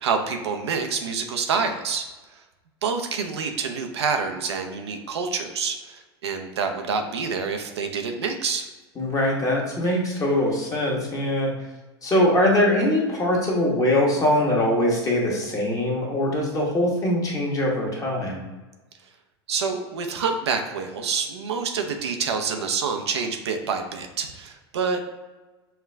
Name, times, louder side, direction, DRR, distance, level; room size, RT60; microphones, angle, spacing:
voice 1, 0.0-2.0 2.3-2.4 2.8-8.7 19.5-25.1, right 5 dB, 80° right, 5 dB, 0.6 m, -27 dB
voice 2, 9.0-11.5 12.0-18.5, left 1 dB, 25° left, -2 dB, 1.3 m, -22 dB
5.7 x 2.4 x 3.3 m, 1.2 s
hypercardioid pair, 100°, 14 cm